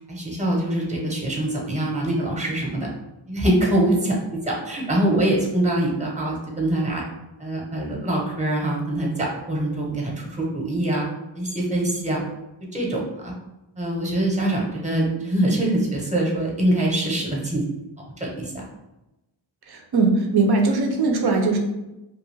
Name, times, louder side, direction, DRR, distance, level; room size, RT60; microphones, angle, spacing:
voice 1, 0.0-2.9 3.3-4.2 4.4-7.0 7.4-11.0 11.3-12.2 12.7-13.3 13.8-17.6 18.2-18.6, right 1 dB, 15° right, -2 dB, 0.9 m, -24 dB
voice 2, 19.7-21.6, right 3 dB, 55° right, 3 dB, 0.7 m, -20 dB
2.4 x 2.3 x 3.3 m, 0.96 s
cardioid pair, 55°, 47 cm